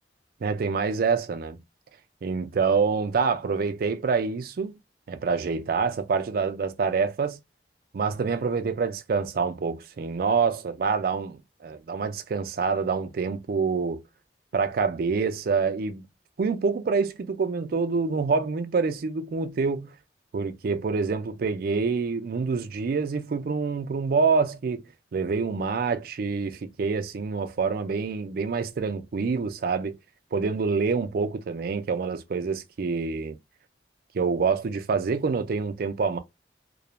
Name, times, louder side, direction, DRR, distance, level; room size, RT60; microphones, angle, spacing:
voice 1, 0.4-1.6 2.2-4.8 5.1-7.4 7.9-14.0 14.5-16.0 16.4-19.9 20.3-24.8 25.1-30.0 30.3-33.4 34.1-36.2, right 5 dB, 55° right, 0.4 m, -26 dB
2.3 x 2.0 x 2.9 m
head